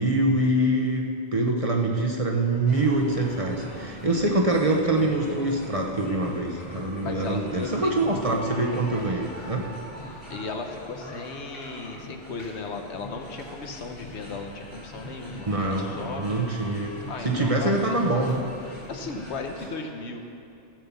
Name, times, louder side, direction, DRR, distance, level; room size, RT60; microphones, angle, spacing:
voice 1, 0.0-9.7 15.4-15.9 16.2-17.0 17.2-18.4, right 2 dB, 35° right, 0 dB, 0.9 m, -24 dB
sound 1, 2.7-19.7, equal, 50° left, 3.5 m, -41 dB
voice 2, 7.0-8.0 10.3-16.2 17.1-18.0 18.9-20.2, left 4 dB, 75° left, 4 dB, 1.2 m, -36 dB
15.0 x 5.5 x 7.1 m, 2.6 s
omnidirectional pair, 1.2 m